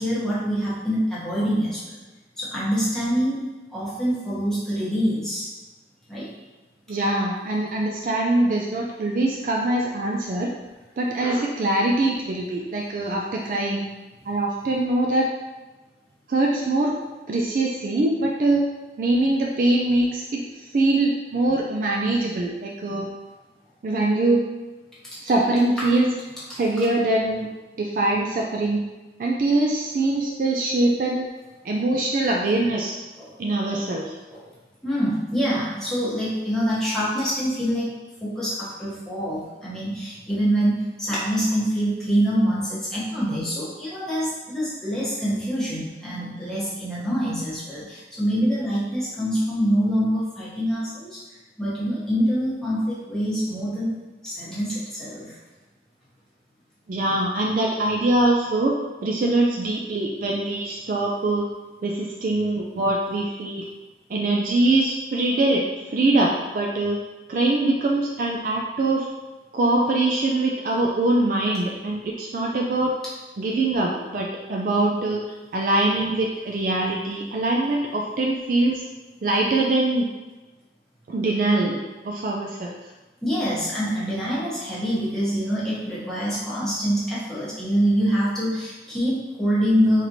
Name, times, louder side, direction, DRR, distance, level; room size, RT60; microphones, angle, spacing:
voice 1, 0.0-1.8 2.4-5.5 6.1-6.3 25.1-25.2 25.8-25.9 26.5-26.6 33.2-33.3 33.7-33.8 34.3-34.5 34.8-51.2 51.6-55.4 83.2-90.1, equal, 5° left, -10 dB, 1.1 m, -25 dB
voice 2, 6.9-10.5 11.0-13.9 14.3-15.3 16.3-17.0 17.3-18.6 19.0-20.4 20.7-23.1 23.8-24.5 25.2-26.1 26.6-27.5 27.8-28.8 29.2-31.3 31.6-32.9 33.4-34.2 56.9-58.8 59.0-61.5 61.8-63.7 64.1-65.7 65.9-67.0 67.3-69.1 69.5-72.9 73.4-78.8 79.2-80.1 81.1-82.8, right 2 dB, 50° right, -1 dB, 0.3 m, -23 dB
4.2 x 3.1 x 2.6 m, 1.2 s
head